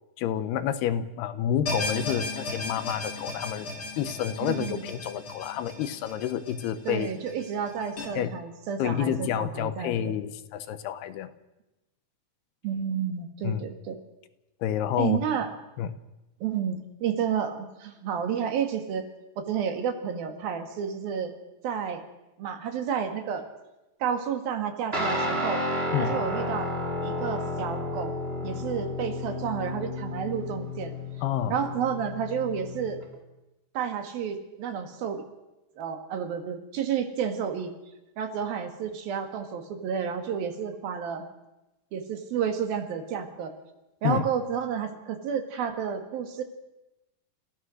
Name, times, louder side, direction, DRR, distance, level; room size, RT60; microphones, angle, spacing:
voice 1, 0.2-3.7 4.0-7.1 8.2-8.3 8.8-11.3 13.4-13.6 14.6-15.2 15.8-15.9 25.9-26.2 31.2-31.5 44.0-44.3, left 10 dB, 80° left, 12 dB, 3.0 m, -29 dB
sound 1, 1.7-8.0, left 3 dB, 35° left, 3.5 m, -35 dB
voice 2, 4.4-4.9 6.9-10.2 12.6-14.0 15.0-15.5 16.4-19.1 19.4-21.3 21.6-22.1 22.4-23.4 24.0-25.7 26.0-26.7 27.0-28.2 28.4-31.0 31.5-33.0 33.8-35.2 35.8-37.7 38.2-41.3 41.9-43.5 44.0-46.4, right 7 dB, 70° right, 5 dB, 3.5 m, -31 dB
Guitar, 24.9-33.1, left 1 dB, 20° right, 1.8 m, -32 dB
29.5 x 15.5 x 6.4 m, 0.99 s
omnidirectional pair, 4.6 m